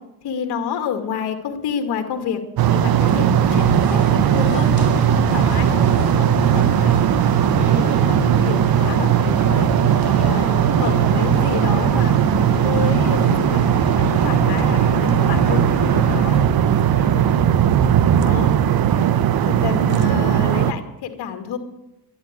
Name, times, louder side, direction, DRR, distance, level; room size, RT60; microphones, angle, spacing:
voice 1, 0.2-2.4 2.7-4.7 5.3-7.1 7.4-9.7 10.0-10.5 10.8-13.6 14.0-17.5 18.1-18.5 19.4-21.6, left 7 dB, 80° left, 6 dB, 2.3 m, -29 dB
sound 1, 2.6-20.7, right 10 dB, 65° right, 1.0 m, -18 dB
sound 2, 3.0-16.4, left 3 dB, 45° left, 4.9 m, -28 dB
12.0 x 11.5 x 8.1 m, 0.88 s
cardioid pair, 90°, 39 cm